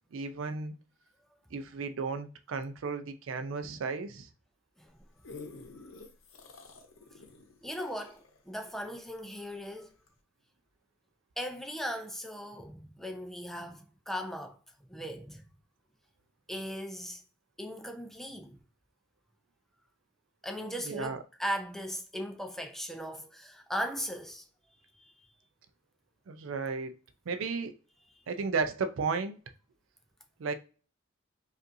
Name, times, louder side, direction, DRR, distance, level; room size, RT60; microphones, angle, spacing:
voice 1, 0.1-0.8 1.5-4.3 20.8-21.2 26.3-26.9 27.3-27.8 28.3-29.4 30.4-30.5, right 4 dB, 90° right, 0.4 m, -34 dB
sound 1, 4.9-9.5 10.1-10.2, left 3 dB, 85° left, 0.8 m, -50 dB
voice 2, 7.6-9.9 11.4-14.6 14.9-15.4 16.5-17.2 17.6-18.6 20.4-24.4 25.0-25.1, equal, ahead, 0.5 m, -38 dB
5.2 x 2.5 x 2.6 m
head